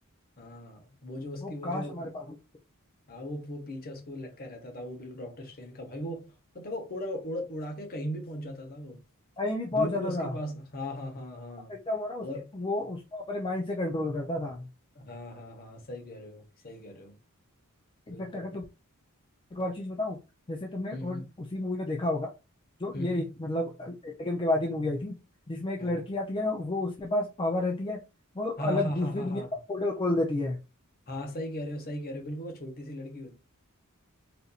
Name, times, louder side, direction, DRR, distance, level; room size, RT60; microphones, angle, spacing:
voice 1, 0.4-2.1 3.1-9.0 9.7-11.8 12.2-12.5 14.9-17.2 18.1-18.6 20.9-21.2 22.9-23.3 25.8-26.0 28.6-29.5 31.1-33.3, equal, 45° left, 1.0 m, -38 dB
voice 2, 1.4-2.4 9.4-10.4 11.7-12.3 12.5-14.7 18.1-18.6 19.5-20.2 20.5-21.2 21.5-22.3 22.8-25.2 25.5-28.0 28.3-30.6, left 2 dB, 25° left, 0.4 m, -31 dB
4.2 x 2.6 x 2.3 m
head